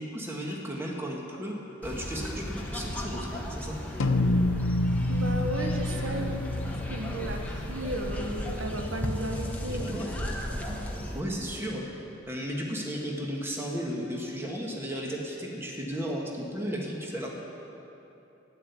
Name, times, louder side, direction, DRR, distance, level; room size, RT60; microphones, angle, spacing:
voice 1, 0.0-1.5 1.8-3.8 9.9-10.1 11.1-17.3, equal, 10° right, -1 dB, 1.6 m, -34 dB
sound 1, 1.8-11.2, equal, 10° left, 1.1 m, -35 dB
sound 2, 4.0-8.6, left 1 dB, 85° left, 0.6 m, -28 dB
voice 2, 5.1-6.4 6.9-10.1 10.7-10.8, right 1 dB, 80° right, 4 dB, 1.2 m, -34 dB
12.0 x 9.9 x 8.3 m, 3.0 s
head